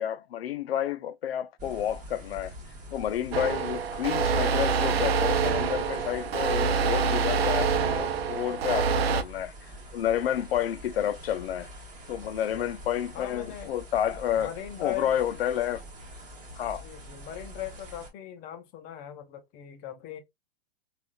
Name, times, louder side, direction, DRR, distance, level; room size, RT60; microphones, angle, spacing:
voice 1, 0.0-2.5 2.9-11.7 12.1-14.5 14.8-15.8 16.6-16.9, left 10 dB, 90° left, 0.5 m, -30 dB
sound 1, 1.6-18.1, equal, 25° right, 1.4 m, -45 dB
sound 2, 3.3-9.2, right 5 dB, 85° right, 0.6 m, -26 dB
voice 2, 12.2-12.8 13.1-13.7 14.4-15.2 16.8-20.2, left 11 dB, 30° left, 0.6 m, -39 dB
3.6 x 2.4 x 2.2 m
hypercardioid pair, 130°, 29 cm